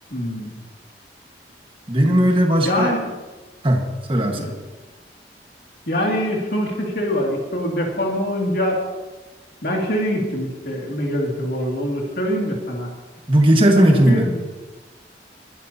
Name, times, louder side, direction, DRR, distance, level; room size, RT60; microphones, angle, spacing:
voice 1, 0.1-0.5 2.6-3.1 4.4-4.5 5.9-8.8 9.6-12.9 13.7-14.4, equal, 60° left, 0 dB, 2.5 m, -24 dB
voice 2, 1.9-2.9 3.6-3.8 4.1-4.5 13.3-14.3, right 1 dB, 30° right, 2 dB, 1.6 m, -16 dB
21.5 x 12.5 x 2.9 m, 1.2 s
head